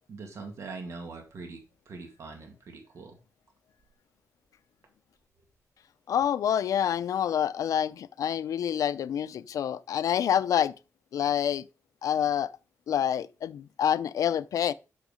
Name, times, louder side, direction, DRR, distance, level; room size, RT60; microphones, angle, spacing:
voice 1, 0.1-1.6 1.9-3.2, right 3 dB, 60° right, 2.0 m, -42 dB
voice 2, 6.1-10.7 11.1-11.6 12.0-12.5 12.9-14.7, left 9 dB, 85° left, 0.5 m, -27 dB
7.8 x 6.4 x 5.1 m
wide cardioid pair, 145°, 6 cm